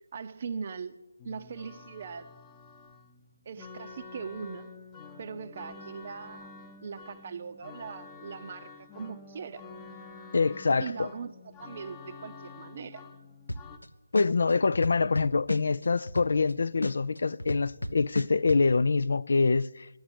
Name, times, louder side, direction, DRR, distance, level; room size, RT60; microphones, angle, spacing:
voice 1, 0.1-0.9 1.2-2.3 3.5-4.7 5.2-6.5 6.8-9.6 10.8-11.3 11.6-13.0, right 6 dB, 40° right, 0.6 m, -40 dB
sound 1, 1.2-13.8, left 4 dB, 20° left, 0.9 m, -48 dB
voice 2, 10.3-11.1 14.1-19.9, left 4 dB, 60° left, 0.4 m, -25 dB
sound 2, 13.5-13.8 14.1-16.5 16.8-18.6, left 1 dB, 90° left, 0.7 m, -33 dB
11.5 x 7.9 x 9.9 m
figure-of-eight pair, 155°, 0 cm